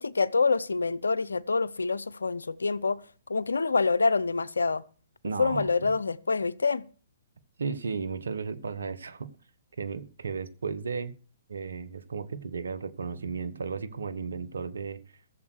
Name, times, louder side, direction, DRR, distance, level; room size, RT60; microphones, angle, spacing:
voice 1, 0.0-3.0 3.3-4.8 5.4-6.8, left 4 dB, 85° left, 0.6 m, -26 dB
voice 2, 5.2-5.7 7.6-9.3 9.8-11.1 11.5-15.0, right 5 dB, 80° right, 1.3 m, -34 dB
15.0 x 7.3 x 6.5 m
hypercardioid pair, 130°, 0 cm